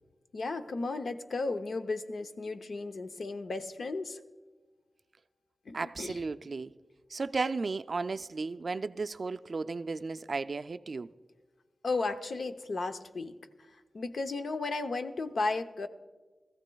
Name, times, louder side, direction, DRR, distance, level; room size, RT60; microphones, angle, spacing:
voice 1, 0.3-4.2 5.7-6.2 11.8-13.3 13.9-15.9, left 3 dB, 70° left, 0.7 m, -34 dB
voice 2, 5.7-6.7 7.1-11.1, right 4 dB, 50° right, 0.3 m, -34 dB
20.5 x 14.5 x 2.3 m
wide cardioid pair, 120°, 0 cm